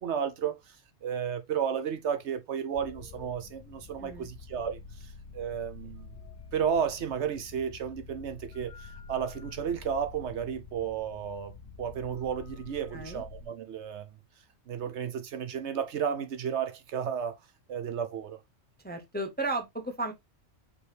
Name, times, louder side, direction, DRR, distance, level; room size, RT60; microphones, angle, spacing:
voice 1, 0.0-6.1 6.5-14.2 14.7-17.4 17.7-18.4, right 8 dB, 65° right, 0.9 m, -33 dB
sound 1, 2.7-13.5, left 4 dB, 65° left, 0.5 m, -48 dB
voice 2, 12.9-13.2 18.8-20.1, right 2 dB, 10° left, 0.6 m, -34 dB
5.2 x 3.0 x 3.2 m
omnidirectional pair, 1.3 m